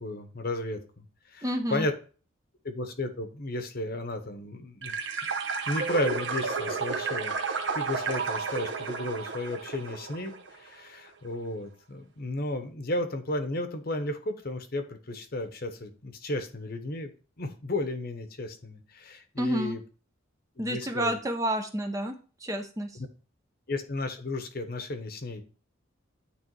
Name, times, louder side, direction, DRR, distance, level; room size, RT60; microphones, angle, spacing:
voice 1, 0.0-1.9 2.6-4.9 5.2-5.3 5.7-17.1 17.4-19.8 20.6-21.2 22.9-23.1 23.7-25.4, left 1 dB, 45° left, 7 dB, 1.0 m, -34 dB
voice 2, 1.4-1.9 19.4-19.8 20.6-22.1 22.4-22.9, equal, 15° right, 6 dB, 0.6 m, -29 dB
sound 1, 4.8-10.6, right 5 dB, 60° right, 0.8 m, -32 dB
9.3 x 3.4 x 4.6 m, 0.37 s
head